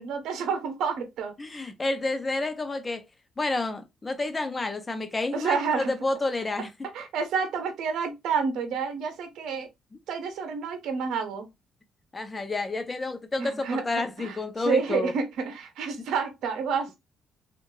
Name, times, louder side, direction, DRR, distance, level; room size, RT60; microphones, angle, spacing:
voice 1, 0.0-1.3 5.3-5.9 6.9-9.7 10.1-11.5 13.4-13.8 14.2-14.3 14.6-17.0, right 6 dB, 80° right, 0.7 m, -29 dB
voice 2, 1.4-3.1 3.4-6.7 9.9-10.0 12.1-15.1, left 2 dB, 25° left, 0.7 m, -29 dB
3.1 x 2.5 x 2.6 m
cardioid pair, 90°, 0 cm